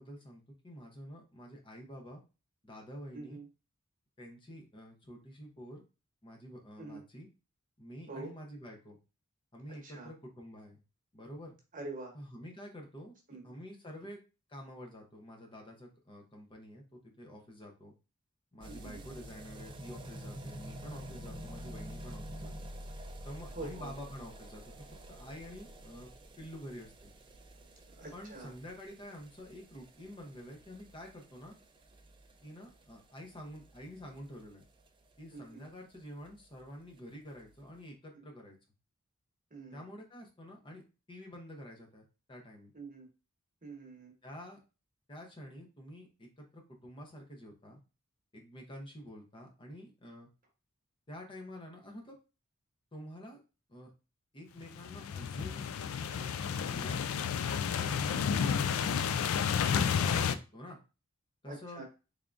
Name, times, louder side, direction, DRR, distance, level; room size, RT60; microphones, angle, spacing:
voice 1, 0.0-2.2 2.6-3.4 4.2-5.8 6.2-7.3 7.8-9.0 9.5-10.8 11.1-11.6 12.1-13.1 13.4-14.2 14.5-17.9 18.5-22.5 23.2-26.1 26.4-27.1 28.1-31.5 32.4-34.6 35.2-38.6 39.7-40.8 41.1-42.7 44.2-44.6 45.1-47.8 48.3-50.3 51.1-52.2 52.9-53.4 53.7-53.9 54.3-55.7 56.0-57.0 57.7-59.0 59.7-60.8 61.4-61.8, equal, 25° left, 0 dB, 0.7 m, -48 dB
voice 2, 3.1-3.5 6.8-7.0 8.1-8.3 9.8-10.1 11.7-12.2 13.3-13.5 18.7-19.0 23.5-23.9 27.9-28.5 35.3-35.6 38.1-38.3 39.5-39.8 42.7-43.1 43.6-44.1 61.5-61.9, right 2 dB, 40° right, 1 dB, 1.1 m, -45 dB
sound 1, 18.6-35.4 35.6-35.7 35.9-36.0 36.3-36.4 36.6-36.7 37.4-37.5, right 1 dB, 25° right, 0.5 m, -48 dB
sound 2, 54.7-60.3, left 7 dB, 80° left, 0.3 m, -31 dB
3.5 x 3.5 x 2.5 m, 0.31 s
head